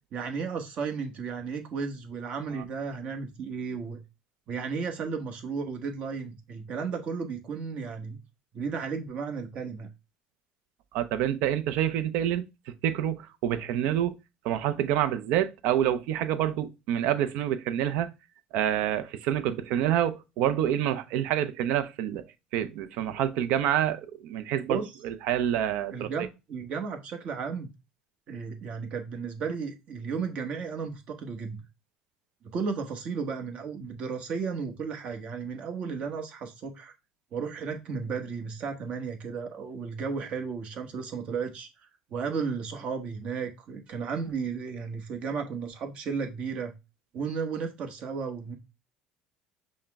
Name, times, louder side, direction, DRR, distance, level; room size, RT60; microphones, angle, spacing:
voice 1, 0.1-4.0 4.5-8.2 8.5-9.9 24.7-24.9 25.9-27.7 28.3-31.6 32.4-36.9 37.3-46.7 47.1-48.6, right 5 dB, 55° right, 1.0 m, -34 dB
voice 2, 10.9-12.4 12.8-14.2 14.4-18.1 18.5-22.2 22.5-26.1, right 11 dB, 75° right, 0.5 m, -27 dB
5.5 x 2.1 x 3.4 m
supercardioid pair, 85°, 2 cm